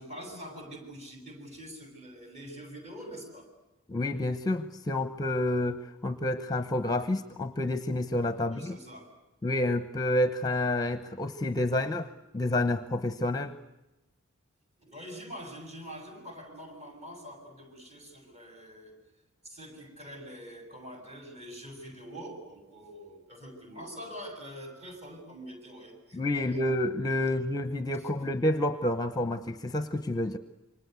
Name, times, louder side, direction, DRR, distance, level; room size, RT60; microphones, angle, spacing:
voice 1, 0.0-3.5 8.4-9.1 14.8-19.0 19.4-26.6 27.2-27.3, equal, 30° right, 4 dB, 7.8 m, -45 dB
voice 2, 3.9-8.8 9.4-12.1 12.3-13.5 26.1-30.4, left 1 dB, 15° left, 10 dB, 0.9 m, -29 dB
28.0 x 25.5 x 8.2 m, 0.97 s
head